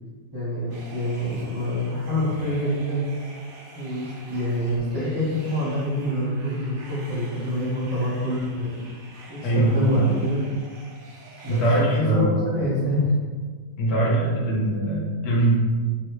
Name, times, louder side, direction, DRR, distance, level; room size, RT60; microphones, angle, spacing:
voice 1, 0.3-3.1 3.7-8.9 9.3-10.4 11.4-11.6 11.9-12.3 12.5-13.1, left 1 dB, 20° right, -12 dB, 0.8 m, -26 dB
sound 1, 0.7-12.0, right 2 dB, 60° right, 0.5 m, -46 dB
voice 2, 9.4-10.1 11.5-12.5 13.8-15.6, right 1 dB, 60° left, -5 dB, 1.5 m, -22 dB
5.5 x 3.1 x 3.1 m, 1.5 s
omnidirectional pair, 1.9 m